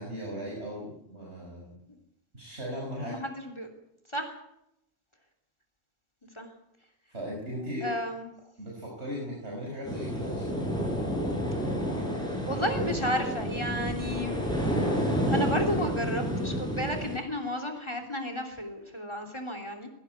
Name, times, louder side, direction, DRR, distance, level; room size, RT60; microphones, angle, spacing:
voice 1, 0.0-1.8 2.3-3.1 7.1-7.9 8.6-10.6, equal, 80° right, -3 dB, 5.9 m, -37 dB
voice 2, 3.0-3.7 4.1-4.4 6.3-6.5 7.8-8.3 12.4-14.4 15.3-19.9, equal, 25° left, 6 dB, 3.3 m, -33 dB
sound 1, 9.8-17.2, equal, 5° left, 8.0 m, -30 dB
19.5 x 16.5 x 9.6 m, 0.81 s
omnidirectional pair, 1.1 m